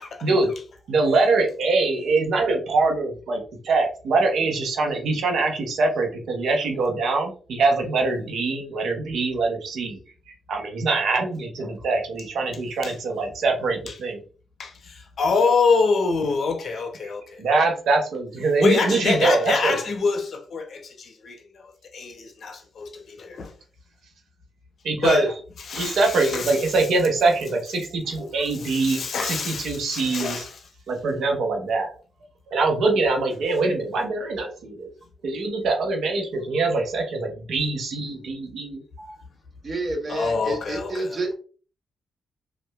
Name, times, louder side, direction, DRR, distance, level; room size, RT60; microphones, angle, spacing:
voice 1, 0.2-0.5 0.9-10.0 10.3-14.2 17.4-19.8 24.8-25.3 25.7-30.4 30.9-31.9 32.5-34.9 35.2-39.1, right 3 dB, 75° right, 0.6 m, -23 dB
voice 2, 14.6-17.4 18.6-23.5 25.0-25.3 25.6-26.6 28.6-30.5 40.1-41.2, left 4 dB, 60° left, 0.5 m, -25 dB
voice 3, 39.6-41.3, right 2 dB, 45° right, 0.9 m, -29 dB
2.6 x 2.2 x 2.2 m
supercardioid pair, 50°, 0 cm